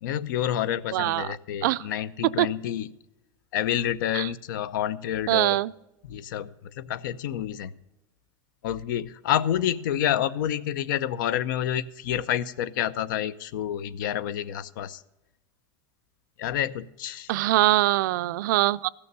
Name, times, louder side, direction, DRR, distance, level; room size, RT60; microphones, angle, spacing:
voice 1, 0.0-2.9 3.5-5.6 6.1-7.7 8.6-15.0 16.4-17.3, left 11 dB, 90° left, 18 dB, 0.6 m, -28 dB
voice 2, 0.9-1.4 1.6-1.9 2.4-2.5 4.1-4.3 5.3-5.7 17.3-18.9, right 17 dB, 80° right, 17 dB, 0.4 m, -23 dB
14.0 x 6.9 x 6.8 m, 0.94 s
supercardioid pair, 165°, 10 cm